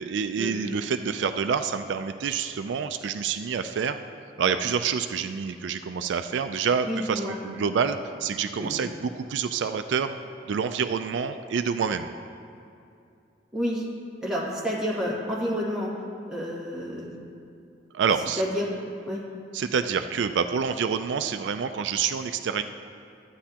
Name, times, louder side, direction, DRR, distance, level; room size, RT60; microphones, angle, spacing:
voice 1, 0.0-4.0 4.4-10.2 10.5-12.1 17.9-18.4 19.5-22.6, right 6 dB, 75° right, 9 dB, 0.4 m, -27 dB
voice 2, 6.9-7.4 8.5-8.8 13.5-13.8 14.2-15.9 16.3-17.2 18.4-18.7 19.1-19.2, equal, 5° right, -7 dB, 2.0 m, -29 dB
13.5 x 9.0 x 2.9 m, 2.6 s
head